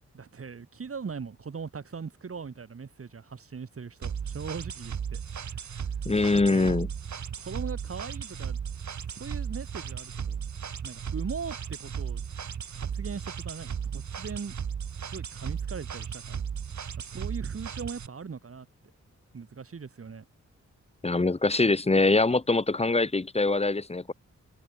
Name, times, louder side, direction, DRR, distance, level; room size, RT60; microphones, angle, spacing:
voice 1, 0.1-5.2 6.2-6.8 7.4-8.6 9.1-10.4 10.8-12.2 12.7-14.5 15.1-16.4 16.8-18.7 19.3-20.2, right 5 dB, 50° right, 6.6 m, -40 dB
sound 1, 4.0-18.1, right 7 dB, 70° right, 3.3 m, -35 dB
voice 2, 6.1-6.9 21.0-24.1, left 3 dB, 20° left, 1.9 m, -23 dB
wide cardioid pair, 180°, 30 cm